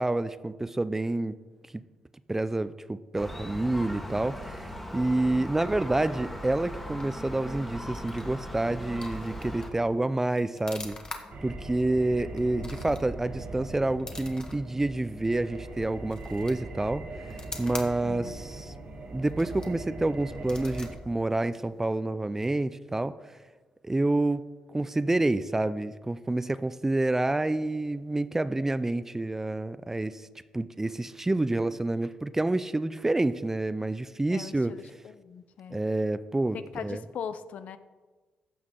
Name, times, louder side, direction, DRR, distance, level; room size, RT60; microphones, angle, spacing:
voice 1, 0.0-1.4 1.7-1.8 2.3-11.0 11.4-17.1 17.6-18.7 19.1-23.2 23.8-30.3 30.5-34.8 35.7-37.0, right 2 dB, 15° right, 15 dB, 0.4 m, -28 dB
Gull seagull, 3.2-9.7, equal, 5° left, 1.6 m, -39 dB
sound 1, 6.5-22.0, left 2 dB, 30° left, 1.5 m, -47 dB
sound 2, 11.3-21.0, right 2 dB, 60° right, 1.5 m, -41 dB
voice 2, 18.0-18.4 34.3-35.8 36.7-37.8, left 7 dB, 70° left, 12 dB, 0.6 m, -40 dB
15.0 x 6.0 x 3.8 m, 1.3 s
cardioid pair, 75°, 3 cm